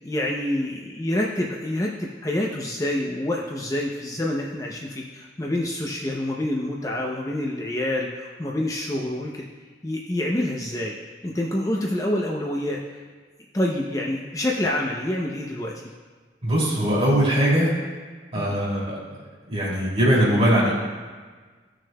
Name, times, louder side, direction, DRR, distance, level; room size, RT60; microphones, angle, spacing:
voice 1, 0.0-9.5 9.8-10.9 11.2-13.0 13.5-15.7 18.3-18.6, left 1 dB, 20° left, -2 dB, 0.6 m, -27 dB
voice 2, 16.4-17.7 18.3-19.0 19.5-20.7, equal, 35° right, -6 dB, 2.7 m, -20 dB
15.5 x 6.2 x 2.2 m, 1.5 s
head